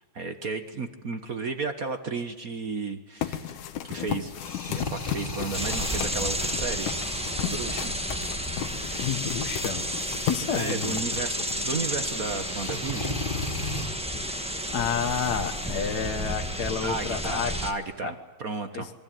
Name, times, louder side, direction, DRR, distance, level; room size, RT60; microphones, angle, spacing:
voice 1, 0.1-4.3 4.7-6.9 7.4-7.9 10.6-13.2 16.8-18.9, right 4 dB, 55° right, 8 dB, 0.9 m, -33 dB
sound 1, 3.2-12.7, left 10 dB, 90° left, 2.7 m, -35 dB
sound 2, 4.2-17.7, left 2 dB, 15° left, 2.6 m, -39 dB
sound 3, 5.5-17.7, equal, 10° right, 0.3 m, -32 dB
voice 2, 9.0-9.8 10.3-11.0 14.7-17.6 18.0-18.1 18.7-18.9, left 6 dB, 45° left, 5 dB, 1.4 m, -30 dB
26.0 x 23.5 x 9.2 m, 1.2 s
omnidirectional pair, 3.4 m